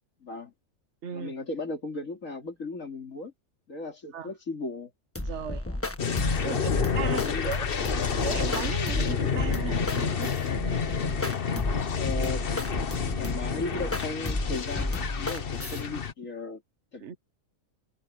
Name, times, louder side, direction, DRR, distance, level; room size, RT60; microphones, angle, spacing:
voice 1, 0.2-0.5 1.1-3.3 3.7-4.9 5.7-5.8 6.7-7.5 12.0-12.5 13.2-16.6 16.9-17.2, left 3 dB, 70° left, 3.5 m, -36 dB
voice 2, 1.0-1.3 4.1-4.3 5.2-5.6 6.4-7.6 8.1-10.4 17.0-17.2, right 8 dB, 60° right, 1.1 m, -36 dB
sound 1, 5.2-15.8, left 1 dB, 10° left, 1.4 m, -33 dB
sound 2, 6.0-16.1, left 6 dB, 45° left, 1.2 m, -29 dB
omnidirectional pair, 1.4 m